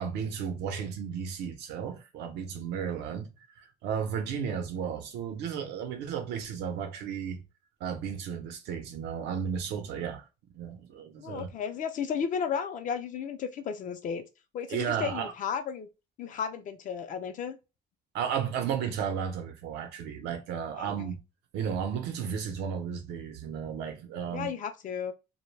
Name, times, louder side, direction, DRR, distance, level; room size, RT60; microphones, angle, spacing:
voice 1, 0.0-7.4 7.8-10.3 10.5-11.5 14.7-15.3 18.1-21.2 21.5-24.5, right 7 dB, 85° right, 0.7 m, -34 dB
voice 2, 11.2-14.2 14.5-15.9 16.2-17.6 20.7-21.1 24.3-25.1, left 7 dB, 50° left, 0.5 m, -34 dB
2.2 x 2.2 x 3.2 m
cardioid pair, 110°, 17 cm